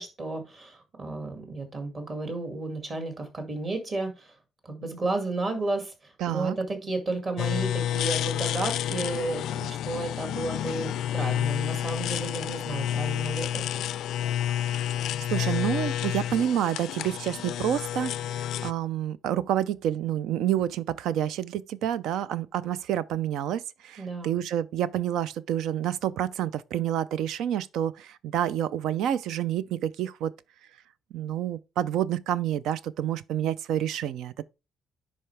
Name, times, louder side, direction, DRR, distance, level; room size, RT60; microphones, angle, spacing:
voice 1, 0.0-4.4 4.6-13.6 24.0-24.4, right 2 dB, 30° right, 2.0 m, -32 dB
voice 2, 6.2-6.6 15.3-30.3 31.1-34.4, right 10 dB, 75° right, 0.4 m, -28 dB
sound 1, 7.4-18.7, left 11 dB, 70° left, 0.3 m, -30 dB
10.5 x 4.3 x 3.3 m
cardioid pair, 160°, 0 cm